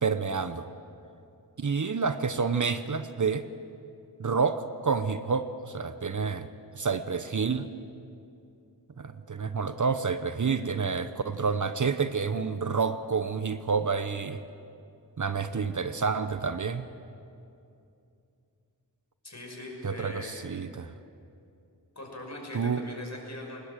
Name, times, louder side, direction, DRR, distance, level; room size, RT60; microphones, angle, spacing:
voice 1, 0.0-0.7 1.6-3.5 4.2-6.5 6.7-7.7 9.0-14.4 15.2-16.9 19.8-20.9 22.5-22.8, right 5 dB, 45° right, 11 dB, 0.8 m, -29 dB
voice 2, 19.2-20.3 21.9-23.6, left 1 dB, 40° left, 0 dB, 6.1 m, -41 dB
20.5 x 19.0 x 7.6 m, 2.6 s
wide cardioid pair, 60°, 41 cm